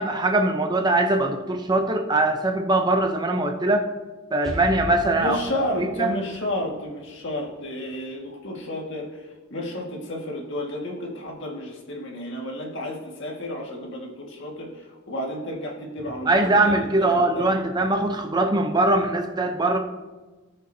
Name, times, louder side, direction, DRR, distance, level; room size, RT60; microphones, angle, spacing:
voice 1, 0.0-3.9 4.3-5.4 5.8-6.1 16.3-19.8, right 2 dB, 20° right, 5 dB, 0.7 m, -22 dB
Explosion, 4.4-8.2, left 1 dB, 5° left, 2.3 m, -38 dB
voice 2, 5.1-17.5, left 1 dB, 60° left, 0 dB, 1.8 m, -32 dB
18.0 x 6.5 x 2.7 m, 1.2 s
head